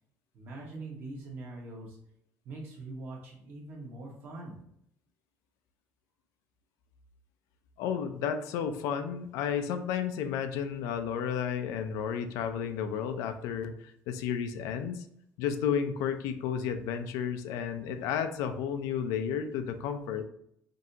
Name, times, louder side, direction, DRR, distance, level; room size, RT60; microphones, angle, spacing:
voice 1, 0.3-2.0 2.4-4.6, right 2 dB, 40° right, -1 dB, 1.2 m, -43 dB
voice 2, 7.8-15.1 15.4-20.2, left 8 dB, 80° left, 8 dB, 0.4 m, -32 dB
5.2 x 2.7 x 2.7 m, 0.72 s
cardioid pair, 180°, 6 cm